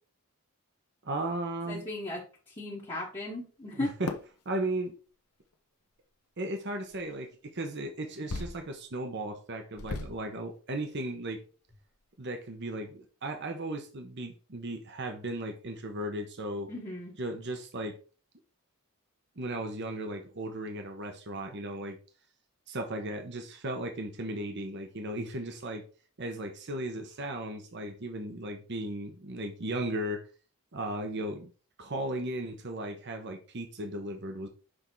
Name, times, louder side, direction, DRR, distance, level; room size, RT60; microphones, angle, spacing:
voice 1, 1.0-1.8 3.7-4.1 4.4-5.0 6.4-11.4 12.2-16.7 17.2-18.0 19.4-22.0 22.7-25.8 26.2-30.2 30.7-31.5 31.8-34.5, right 1 dB, 50° right, 5 dB, 0.9 m, -36 dB
voice 2, 1.7-2.2 2.5-3.9 16.7-17.1, left 2 dB, 25° left, -4 dB, 1.2 m, -36 dB
sound 1, 4.1-4.3 5.5-5.6 6.9-7.1 8.3-8.8 9.2-9.3 9.8-10.3 10.9-11.0 11.3-11.4 11.7-12.0, left 2 dB, 85° left, 0.9 m, -37 dB
6.3 x 3.5 x 4.5 m, 0.37 s
head